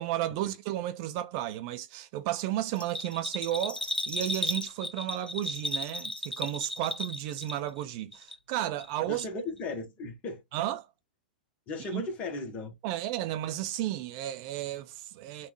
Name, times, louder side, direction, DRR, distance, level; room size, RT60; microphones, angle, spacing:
voice 1, 0.0-9.2 10.5-10.9 11.9-12.0 12.8-15.5, right 13 dB, 40° right, 0.4 m, -33 dB
Bell, 2.7-7.8 8.1-8.9 9.2-9.3, left 1 dB, 90° left, 0.7 m, -34 dB
voice 2, 9.1-10.4 11.7-12.7, left 3 dB, 30° left, 1.2 m, -36 dB
3.5 x 2.4 x 3.1 m
figure-of-eight pair, 100°, 5 cm